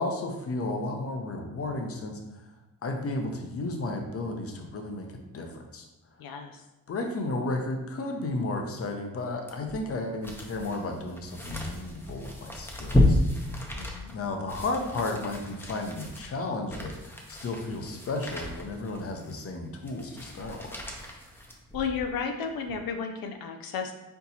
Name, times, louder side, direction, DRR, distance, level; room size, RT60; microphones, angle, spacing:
voice 1, 0.0-2.2 2.8-5.9 6.9-13.2 13.6-13.7 14.1-20.8, left 2 dB, 40° left, 3 dB, 0.7 m, -33 dB
voice 2, 6.2-6.6 13.8-14.1 21.7-23.9, left 6 dB, 85° left, 4 dB, 0.5 m, -33 dB
sound 1, 9.5-22.1 22.6-22.7, left 1 dB, 5° left, 0.6 m, -32 dB
4.5 x 3.9 x 2.8 m, 0.97 s
cardioid pair, 115°, 34 cm